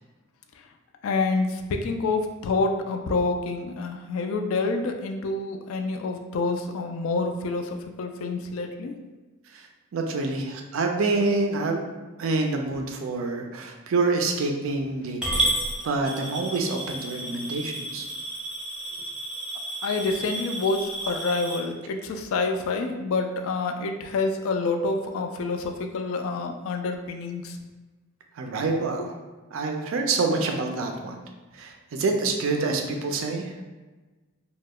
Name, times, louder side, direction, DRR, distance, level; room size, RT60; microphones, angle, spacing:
voice 1, 1.0-8.9 19.8-27.6, left 3 dB, 75° left, 5 dB, 0.3 m, -27 dB
voice 2, 9.9-11.9 12.2-15.5 15.8-18.1 28.4-29.2 29.5-31.2 31.5-33.5, right 3 dB, 70° right, 3 dB, 0.4 m, -27 dB
Coin (dropping) / Glass, 15.2-21.6, right 1 dB, 5° right, 0.5 m, -31 dB
2.2 x 2.0 x 3.5 m, 1.2 s
head